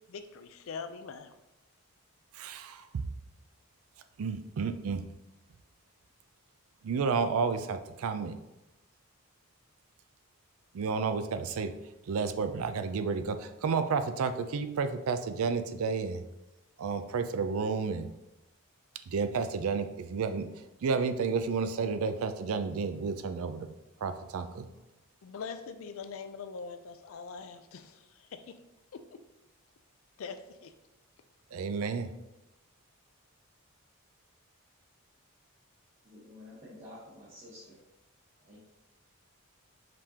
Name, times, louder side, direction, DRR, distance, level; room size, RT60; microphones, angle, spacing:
voice 1, 0.1-1.4 25.2-28.6 28.9-29.2 30.2-30.7, left 5 dB, 65° left, 9 dB, 0.4 m, -43 dB
voice 2, 2.3-3.0 4.2-5.0 6.8-8.4 10.7-11.7 12.1-16.2 16.8-18.1 19.1-20.5 20.8-23.7 24.0-24.7 31.5-32.1, right 5 dB, 75° right, 9 dB, 0.4 m, -31 dB
voice 3, 36.0-37.8 38.4-38.6, left 1 dB, 35° right, -10 dB, 1.1 m, -50 dB
5.0 x 3.6 x 2.8 m, 0.95 s
head